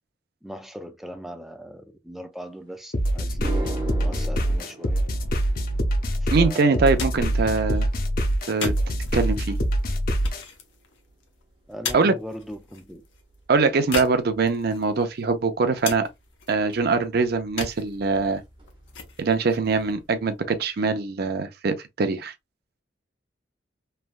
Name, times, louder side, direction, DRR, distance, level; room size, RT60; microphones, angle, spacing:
voice 1, 0.4-5.0 6.2-7.2 11.7-13.0, equal, ahead, 0.4 m, -40 dB
sound 1, 2.7-2.8 3.2-11.7 12.0-12.5 16.1-16.2 17.8-17.9 18.2-18.3 18.6-19.1, right 1 dB, 25° right, 0.8 m, -41 dB
sound 2, 2.9-10.4, right 1 dB, 50° left, 0.6 m, -24 dB
voice 2, 6.3-7.9 8.5-8.7 9.1-9.6 11.9-12.1 13.5-16.1 16.5-18.4 19.2-22.3, right 4 dB, 55° right, 0.5 m, -23 dB
sound 3, 6.7-20.7, left 5 dB, 80° left, 0.7 m, -39 dB
3.3 x 2.2 x 2.4 m
head